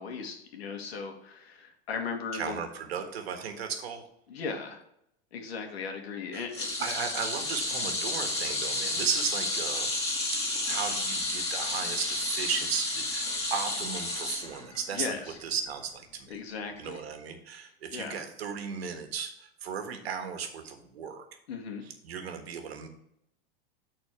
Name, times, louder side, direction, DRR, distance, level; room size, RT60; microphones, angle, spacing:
voice 1, 0.0-2.6 4.3-4.8 5.3-6.7 14.9-15.4 16.3-17.0 17.9-18.2 21.5-21.8, left 5 dB, 85° left, 4 dB, 1.7 m, -37 dB
voice 2, 2.3-4.0 6.3-6.4 6.8-15.1 15.4-16.3 16.8-21.2 21.8-22.9, right 7 dB, 90° right, 6 dB, 1.4 m, -35 dB
sound 1, 6.5-15.0 15.4-15.6 16.8-16.9, left 2 dB, 20° left, 2.3 m, -31 dB
8.7 x 4.2 x 4.5 m, 0.76 s
supercardioid pair, 135°, 30 cm